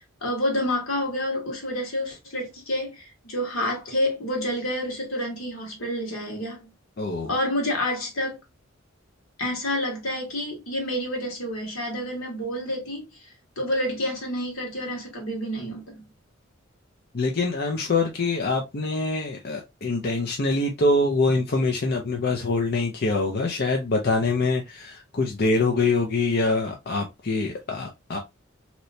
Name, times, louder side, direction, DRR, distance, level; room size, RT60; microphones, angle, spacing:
voice 1, 0.2-6.7 7.2-8.4 9.4-16.0, left 1 dB, 85° left, 1.5 m, -29 dB
voice 2, 7.0-7.3 17.1-28.2, left 3 dB, 50° left, 0.6 m, -24 dB
3.2 x 2.9 x 2.6 m
head